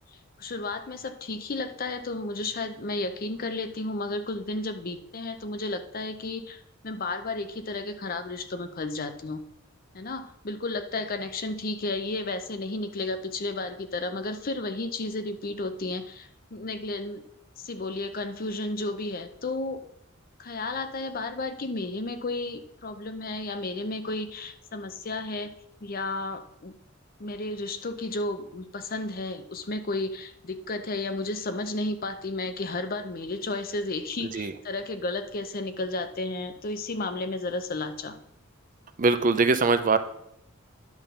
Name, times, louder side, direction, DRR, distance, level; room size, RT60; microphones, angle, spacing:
voice 1, 0.4-6.6 6.8-9.4 9.9-17.2 17.6-19.8 20.4-25.5 25.8-26.7 27.2-38.2, left 2 dB, 45° left, 9 dB, 0.7 m, -33 dB
voice 2, 39.0-40.0, right 4 dB, 40° right, 11 dB, 0.5 m, -22 dB
10.5 x 3.8 x 6.8 m, 0.74 s
head